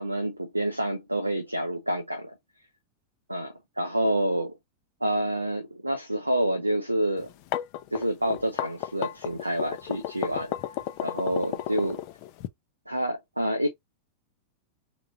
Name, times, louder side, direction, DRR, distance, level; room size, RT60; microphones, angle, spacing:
voice 1, 0.0-2.3 3.3-4.6 5.0-7.3 7.9-10.5 11.0-12.0 12.9-13.7, right 1 dB, 85° right, 0.5 m, -28 dB
sound 1, 7.2-12.5, left 13 dB, 45° left, 0.5 m, -33 dB
3.6 x 3.0 x 2.5 m
figure-of-eight pair, 90°, 0 cm